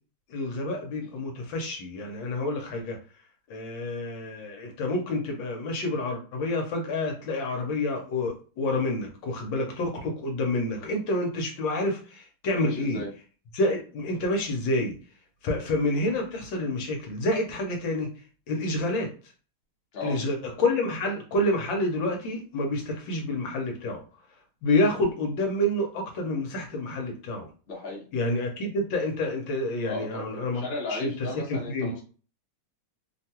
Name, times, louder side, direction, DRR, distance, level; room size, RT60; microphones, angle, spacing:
voice 1, 0.3-3.0 3.5-13.0 13.5-14.9 15.4-18.1 18.5-19.1 20.0-24.0 24.6-27.5 28.1-30.6 30.9-31.9, left 1 dB, 70° left, 2 dB, 1.4 m, -28 dB
voice 2, 12.6-13.1 19.9-20.2 27.7-28.1 29.9-32.0, left 2 dB, 45° left, -2 dB, 0.8 m, -36 dB
3.4 x 2.2 x 2.8 m, 0.38 s
omnidirectional pair, 2.3 m